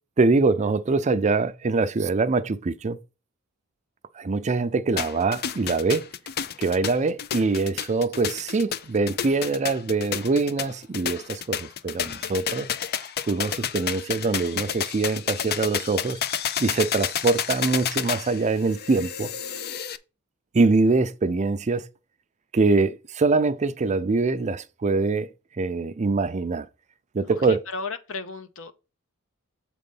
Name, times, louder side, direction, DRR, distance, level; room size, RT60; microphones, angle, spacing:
voice 1, 0.2-3.0 4.2-6.1 6.6-12.7 13.3-16.2 16.6-19.3 20.5-21.9 22.5-25.3 25.6-26.7 27.1-27.6, right 3 dB, 35° right, 0.5 m, -23 dB
sound 1, 5.0-20.0, left 8 dB, 45° left, 0.5 m, -30 dB
voice 2, 27.2-28.7, left 4 dB, 65° left, 0.9 m, -34 dB
7.6 x 3.9 x 5.3 m
head